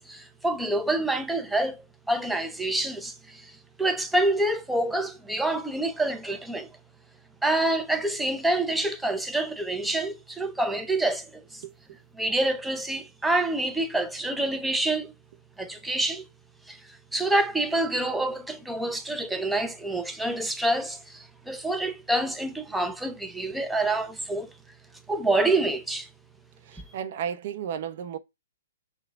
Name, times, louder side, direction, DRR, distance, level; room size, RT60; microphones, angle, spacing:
voice 1, 0.0-6.7 7.4-11.6 12.2-15.1 15.6-16.3 16.7-24.5 25.1-26.1, right 2 dB, 5° right, 0.6 m, -27 dB
voice 2, 26.6-28.2, right 8 dB, 55° right, 0.7 m, -33 dB
6.1 x 2.3 x 3.4 m
hypercardioid pair, 130°, 0 cm